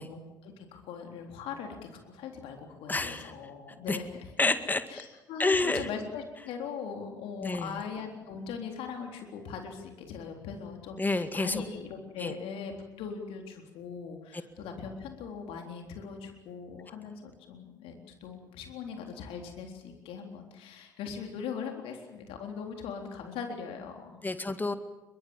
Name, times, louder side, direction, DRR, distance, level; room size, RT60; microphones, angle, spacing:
voice 1, 0.0-4.3 4.9-24.2, left 6 dB, 60° left, 3 dB, 3.8 m, -40 dB
voice 2, 2.9-3.3 3.9-4.0 4.4-4.8 5.4-5.9 7.4-7.8 11.0-11.6 12.2-12.3 24.2-24.7, left 2 dB, 15° left, 10 dB, 2.0 m, -28 dB
23.5 x 22.5 x 7.3 m, 1.1 s
figure-of-eight pair, 55°, 11 cm